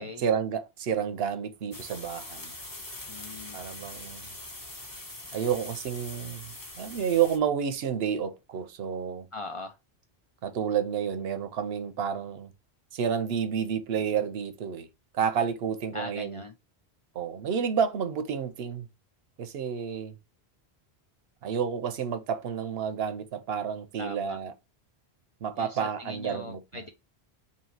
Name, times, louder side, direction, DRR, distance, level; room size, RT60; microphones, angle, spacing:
voice 1, 0.0-2.5 3.5-4.3 5.3-9.3 10.4-12.5 12.9-14.9 15.2-16.4 17.1-18.9 19.4-20.1 21.4-24.5 25.4-26.6, right 7 dB, 75° right, 0.8 m, -30 dB
sound 1, 1.7-7.4, left 2 dB, 20° left, 0.8 m, -43 dB
voice 2, 3.1-3.6 9.3-9.8 15.9-16.5 24.0-24.4 25.6-26.9, left 3 dB, 55° left, 0.3 m, -40 dB
2.9 x 2.8 x 4.3 m
omnidirectional pair, 1.1 m